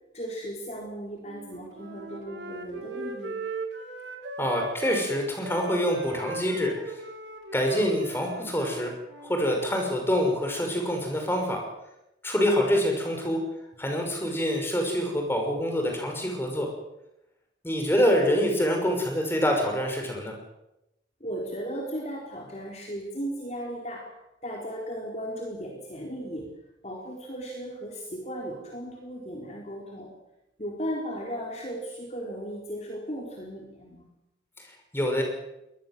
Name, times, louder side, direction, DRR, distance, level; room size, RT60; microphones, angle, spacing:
voice 1, 0.1-3.4 21.2-24.1 24.4-26.5 26.8-30.1 30.6-34.1, equal, 35° left, 0 dB, 4.2 m, -36 dB
Wind instrument woodwind instrument, 1.2-5.1 5.4-9.7, right 3 dB, 75° right, 3.6 m, -39 dB
voice 2, 4.4-6.7 7.5-8.9 9.2-11.6 12.2-13.4 13.8-16.7 17.6-20.3 34.6-34.7 34.9-35.2, equal, 10° left, 2 dB, 5.9 m, -26 dB
23.0 x 20.0 x 7.6 m, 0.89 s
head